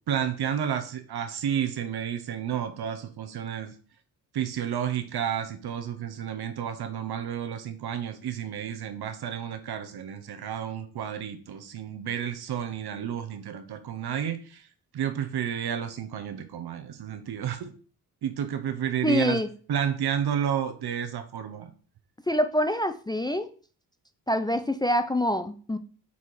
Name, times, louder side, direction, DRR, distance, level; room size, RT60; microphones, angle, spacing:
voice 1, 0.1-3.7 4.3-14.7 14.9-17.7 18.2-19.4 19.7-21.7, right 9 dB, 65° right, 8 dB, 0.8 m, -31 dB
voice 2, 19.0-19.5 22.3-23.5 24.3-25.8, left 1 dB, 10° left, 9 dB, 0.4 m, -25 dB
5.5 x 4.2 x 4.7 m, 0.41 s
cardioid pair, 95°, 41 cm